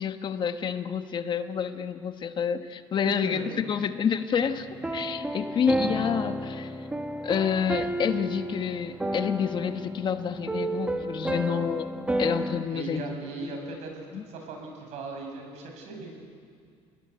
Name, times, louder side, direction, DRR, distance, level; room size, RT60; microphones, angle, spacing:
voice 1, 0.0-4.7 4.9-6.8 7.2-11.9 12.2-13.6 14.1-14.2, left 7 dB, 40° left, 8 dB, 1.3 m, -29 dB
voice 2, 3.1-3.5 12.7-16.1, right 3 dB, 65° right, 3 dB, 7.3 m, -38 dB
sound 1, 4.4-12.6, right 1 dB, 10° right, 1.8 m, -32 dB
28.5 x 20.0 x 9.3 m, 2.2 s
cardioid pair, 120°, 12 cm